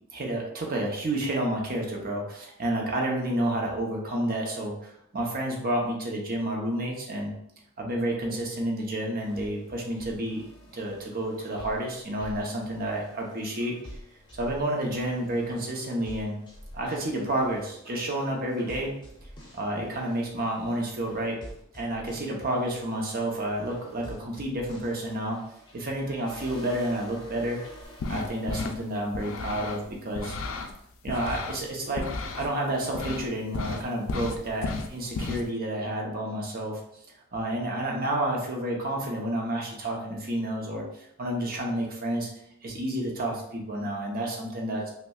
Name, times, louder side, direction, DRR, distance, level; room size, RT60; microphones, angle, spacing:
voice 1, 0.1-7.3 7.8-10.4 10.7-13.8 14.4-16.4 16.7-18.9 19.5-21.4 21.7-25.4 25.7-27.6 28.1-30.3 31.0-36.8 37.3-42.3 42.6-44.9, right 1 dB, 45° right, 0 dB, 0.8 m, -30 dB
sound 1, 9.2-29.0, equal, 20° left, 0.8 m, -48 dB
sound 2, 27.8-28.8 29.1-30.7 31.1-32.5 32.9-33.3 33.5-35.4, left 3 dB, 60° left, 0.4 m, -33 dB
5.6 x 2.2 x 2.3 m, 0.74 s
head